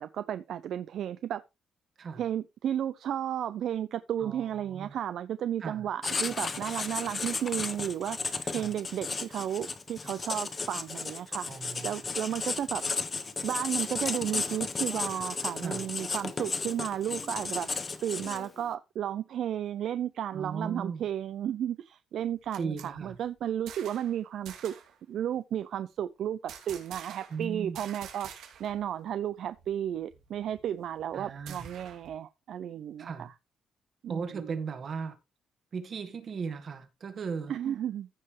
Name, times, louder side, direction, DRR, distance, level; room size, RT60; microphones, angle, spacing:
voice 1, 0.0-1.4 2.2-12.8 13.4-17.7 18.0-24.8 25.1-28.3 28.6-33.3 34.0-34.5 37.5-38.1, right 10 dB, 65° right, 0.5 m, -33 dB
voice 2, 4.2-4.9 5.6-5.8 8.5-8.7 11.5-12.0 15.6-15.8 20.3-21.0 22.6-23.2 27.3-27.8 31.1-31.7 33.0-33.3 34.1-35.1 35.7-37.5, right 5 dB, 40° right, 1.7 m, -37 dB
Writing, 6.0-18.6, left 4 dB, 25° left, 1.1 m, -34 dB
sound 1, 22.2-24.2 24.4-24.9 26.5-27.4 27.7-28.8 29.1-29.2 29.5-32.1, right 8 dB, 90° right, 2.4 m, -48 dB
15.0 x 5.4 x 3.1 m
cardioid pair, 145°, 0 cm